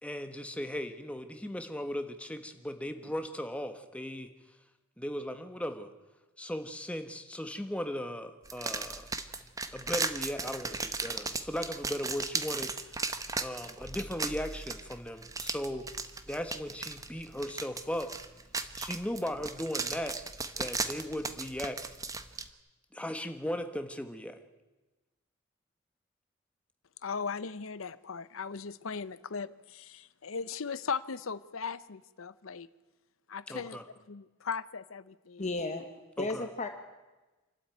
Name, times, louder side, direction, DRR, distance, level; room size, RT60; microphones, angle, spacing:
voice 1, 0.0-4.3 5.0-5.9 6.4-9.1 9.7-12.7 13.4-15.8 16.3-18.1 18.8-20.2 20.6-21.8 22.9-24.4 33.5-33.8 36.2-36.4, equal, 5° left, 7 dB, 1.3 m, -37 dB
sound 1, 8.4-22.5, right 4 dB, 15° right, 0.9 m, -37 dB
voice 2, 27.0-32.7 33.3-33.8 34.1-35.4, left 5 dB, 80° left, 16 dB, 0.8 m, -38 dB
voice 3, 33.5-33.8 35.4-35.9 36.1-36.7, left 2 dB, 35° left, 6 dB, 1.4 m, -34 dB
27.5 x 12.5 x 9.2 m, 1.2 s
head